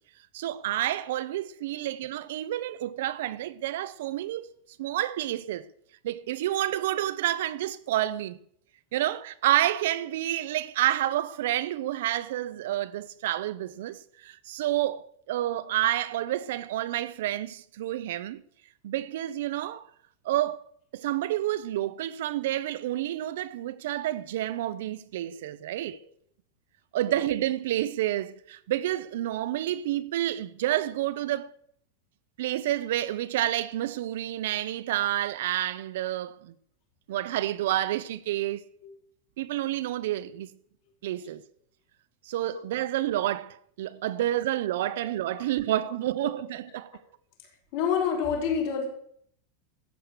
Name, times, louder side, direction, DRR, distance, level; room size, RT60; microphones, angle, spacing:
voice 1, 0.3-4.5 4.8-5.7 6.0-8.4 8.9-18.4 18.8-19.9 20.2-20.6 20.9-26.0 26.9-31.5 32.4-36.5 37.1-38.6 39.4-40.5 41.0-41.4 42.3-46.9, right 13 dB, 70° right, 0.7 m, -29 dB
voice 2, 47.7-48.9, left 7 dB, 50° left, 4.7 m, -27 dB
14.0 x 8.5 x 6.6 m
supercardioid pair, 170°, 0 cm